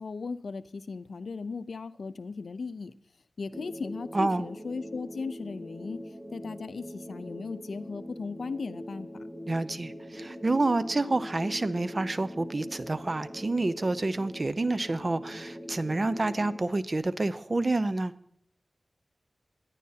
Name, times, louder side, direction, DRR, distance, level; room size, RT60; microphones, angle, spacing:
voice 1, 0.0-2.9 3.4-6.0 6.3-9.2, left 4 dB, 85° left, 12 dB, 0.6 m, -37 dB
sound 1, 3.5-16.6, equal, 10° right, 2.2 m, -42 dB
voice 2, 4.1-4.5 9.5-18.1, right 2 dB, 45° right, 13 dB, 0.7 m, -28 dB
23.0 x 11.0 x 2.8 m, 0.69 s
wide cardioid pair, 65°, 0 cm